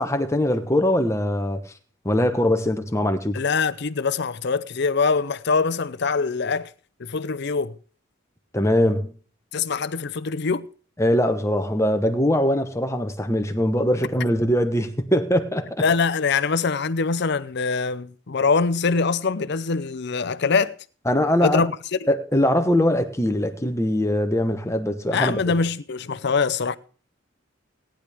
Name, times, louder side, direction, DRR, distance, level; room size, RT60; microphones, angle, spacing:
voice 1, 0.0-1.6 2.0-3.4 8.5-9.1 11.0-15.8 21.1-21.7 22.1-25.4, left 1 dB, 15° left, 1.1 m, -22 dB
voice 2, 3.3-6.7 7.0-7.7 9.5-10.7 15.8-20.8 21.4-21.7 22.0-22.1 25.1-26.8, left 4 dB, 60° left, 0.6 m, -23 dB
18.0 x 10.0 x 3.5 m
head